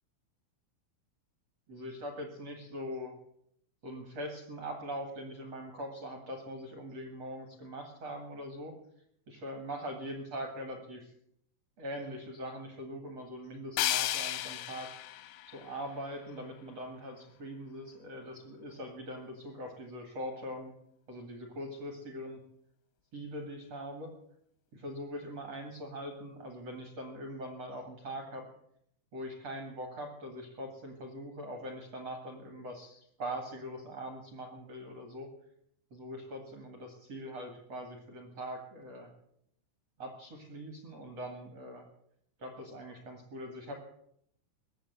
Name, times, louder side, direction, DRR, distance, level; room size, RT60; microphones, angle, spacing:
voice 1, 1.7-3.1 3.8-8.8 9.3-11.1 11.8-14.9 15.5-20.7 21.1-22.4 23.1-24.1 24.7-28.5 29.1-35.3 35.9-39.1 40.0-41.8 42.4-43.7, equal, 65° right, 4 dB, 1.6 m, -42 dB
sound 1, 13.8-16.7, left 13 dB, 90° left, 3.7 m, -35 dB
20.0 x 7.7 x 8.0 m, 0.72 s
omnidirectional pair, 6.0 m